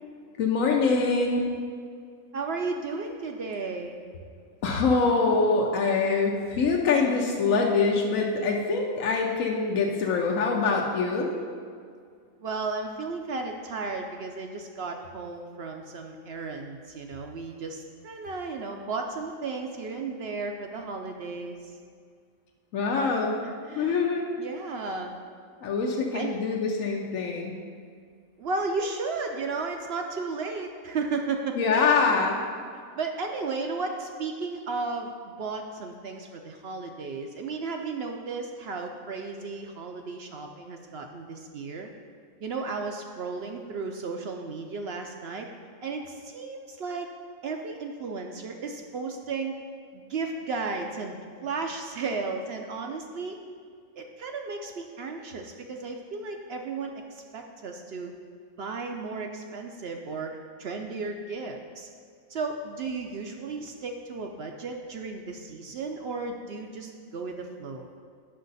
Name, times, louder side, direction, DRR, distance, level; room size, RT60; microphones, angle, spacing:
voice 1, 0.4-1.4 4.6-11.3 22.7-23.4 23.8-24.2 25.6-27.6 31.6-32.4, left 4 dB, 70° left, -1 dB, 1.1 m, -24 dB
voice 2, 2.3-4.0 12.4-21.6 23.7-24.0 24.4-25.1 26.1-26.4 28.4-31.8 32.7-41.9 42.4-45.5 45.8-47.1 47.4-49.5 49.9-53.4 54.0-58.1 58.6-60.3 60.6-61.9 62.3-67.9, right 4 dB, 60° right, 3 dB, 0.7 m, -34 dB
8.8 x 6.5 x 4.0 m, 2.1 s
omnidirectional pair, 1.5 m